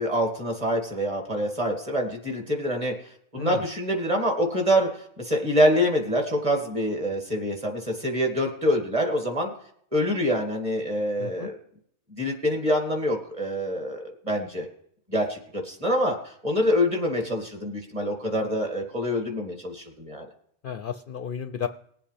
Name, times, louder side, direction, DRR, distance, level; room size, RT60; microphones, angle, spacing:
voice 1, 0.0-2.9 3.3-9.5 9.9-11.6 12.2-14.7 15.1-16.2 16.4-20.2, equal, 30° right, 2 dB, 2.4 m, -25 dB
voice 2, 3.4-3.7 11.2-11.5 20.6-21.7, left 8 dB, 60° left, 9 dB, 0.6 m, -33 dB
20.0 x 7.7 x 3.4 m, 0.67 s
omnidirectional pair, 1.2 m